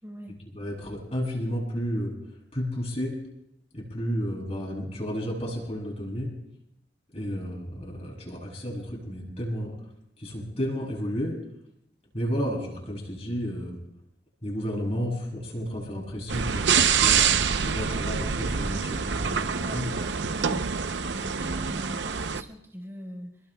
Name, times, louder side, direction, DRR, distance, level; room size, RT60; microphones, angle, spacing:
voice 1, 0.0-0.4 19.6-20.7 21.1-23.4, equal, 15° right, 1 dB, 4.2 m, -41 dB
voice 2, 0.5-2.2 2.5-3.2 3.7-6.4 7.1-9.8 10.2-11.4 12.1-13.8 14.4-17.3 17.5-20.0, equal, 35° left, -3 dB, 7.2 m, -32 dB
sound 1, 16.3-22.4, right 6 dB, 80° right, 0.7 m, -26 dB
29.0 x 21.0 x 2.3 m, 0.80 s
head